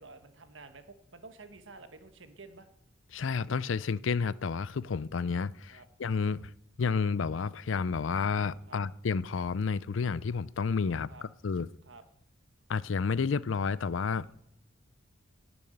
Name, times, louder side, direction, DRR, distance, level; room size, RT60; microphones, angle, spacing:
voice 1, 0.0-2.7 5.7-5.8 8.7-8.8 11.1-11.2 11.8-12.0, right 3 dB, 70° right, 1.5 m, -50 dB
voice 2, 3.1-6.4 6.8-11.1 11.4-11.7 12.7-14.4, left 5 dB, 75° left, 0.5 m, -30 dB
18.5 x 7.0 x 7.9 m
head